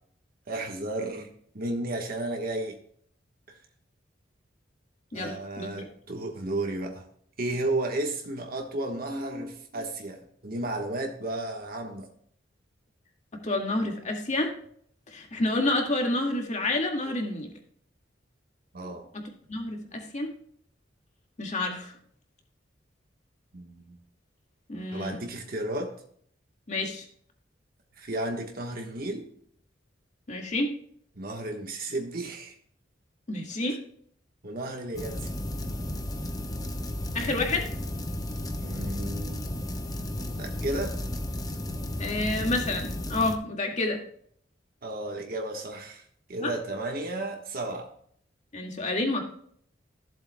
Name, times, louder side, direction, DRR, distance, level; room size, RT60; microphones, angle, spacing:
voice 1, 0.5-1.3 1.5-2.8 3.5-3.6 5.1-7.1 7.4-12.1 17.1-17.2 18.7-19.1 23.5-24.0 24.9-26.0 28.0-29.3 31.1-32.6 33.6-33.8 34.4-35.3 38.6-39.5 40.4-41.0 44.8-47.9, right 2 dB, 55° right, 1.4 m, -33 dB
voice 2, 5.1-5.9 13.4-14.5 15.1-17.5 19.1-19.2 19.5-20.3 21.4-21.9 24.7-25.2 26.7-27.1 30.3-30.7 33.3-33.8 37.1-37.7 42.0-44.0 46.4-46.5 48.5-49.2, left 2 dB, 40° left, 2.0 m, -29 dB
sound 1, 34.9-43.4, left 1 dB, 20° left, 0.9 m, -33 dB
15.0 x 7.7 x 2.3 m
head